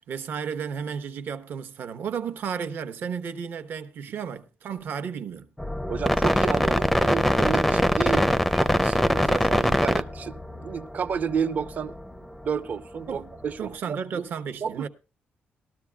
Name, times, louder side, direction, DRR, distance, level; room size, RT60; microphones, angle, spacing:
voice 1, 0.0-5.5 13.1-13.3 13.6-14.9, right 7 dB, 60° right, 1.0 m, -33 dB
sound 1, 5.6-12.2 12.5-12.6, equal, 5° left, 0.5 m, -23 dB
voice 2, 5.9-12.0 12.4-14.2 14.6-14.9, right 6 dB, 40° right, 0.6 m, -31 dB
19.0 x 13.0 x 2.3 m
wide cardioid pair, 165°, 4 cm